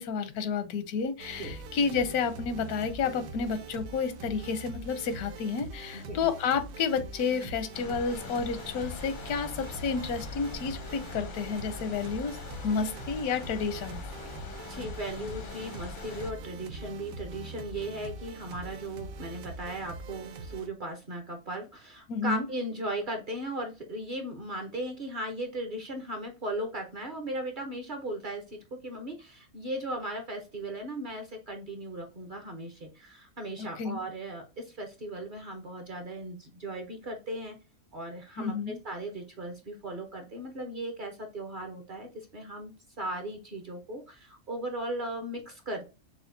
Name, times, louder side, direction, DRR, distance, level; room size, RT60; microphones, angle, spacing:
voice 1, 0.0-12.4 12.6-14.0 22.1-22.4 33.6-34.0 38.4-38.8, left 5 dB, 85° left, 1.2 m, -31 dB
sound 1, 1.2-20.7, right 3 dB, 70° right, 1.1 m, -43 dB
sound 2, 7.7-16.3, left 5 dB, 55° left, 0.5 m, -43 dB
voice 2, 14.7-37.6 37.9-45.9, right 1 dB, 45° right, 0.7 m, -37 dB
6.1 x 2.3 x 2.6 m
omnidirectional pair, 1.5 m